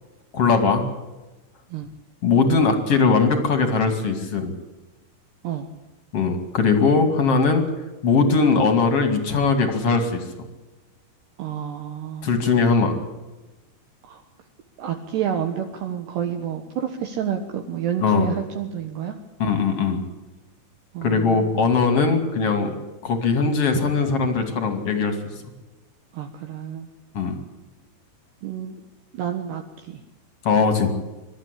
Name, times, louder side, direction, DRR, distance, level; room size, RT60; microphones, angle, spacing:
voice 1, 0.3-0.8 2.2-4.5 6.1-7.6 8.0-10.5 12.2-13.0 18.0-18.3 19.4-20.0 21.0-22.7 23.0-25.2 27.1-27.4 30.4-30.9, left 4 dB, 40° left, 7 dB, 2.5 m, -20 dB
voice 2, 11.4-12.3 14.0-14.2 14.8-19.2 20.9-21.5 26.1-26.9 28.4-28.8 29.1-30.0, right 9 dB, 70° right, 4 dB, 3.1 m, -29 dB
25.5 x 12.5 x 9.9 m, 1.1 s
omnidirectional pair, 5.7 m